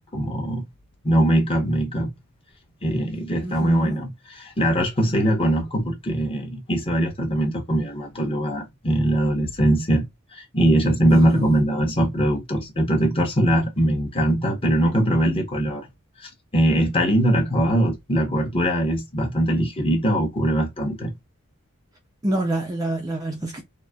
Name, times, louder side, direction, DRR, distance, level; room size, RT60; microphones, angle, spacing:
voice 1, 0.1-0.7 1.0-2.1 2.8-10.0 10.3-15.9 16.2-21.1, right 1 dB, 25° left, 0.9 m, -21 dB
voice 2, 3.4-4.0 11.1-11.6 22.2-23.6, right 1 dB, 15° right, 0.4 m, -26 dB
3.8 x 2.0 x 2.2 m
head